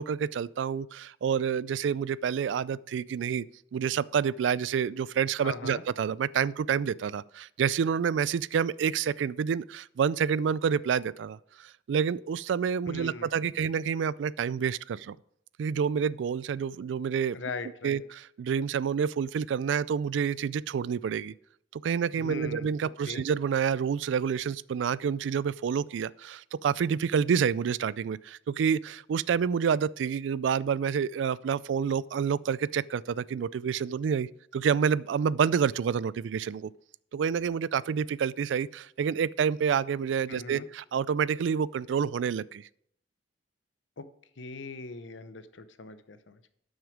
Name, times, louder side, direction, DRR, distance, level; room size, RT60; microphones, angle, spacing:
voice 1, 0.0-3.4 3.7-15.2 15.6-17.4 17.8-21.3 21.7-36.7 37.1-42.7, right 7 dB, 75° right, 0.3 m, -28 dB
voice 2, 5.4-5.8 12.9-13.5 17.3-18.0 22.2-22.7 23.1-23.2 40.3-40.7 44.0-44.1 44.4-46.5, left 4 dB, 85° left, 0.8 m, -40 dB
12.0 x 6.3 x 4.9 m
head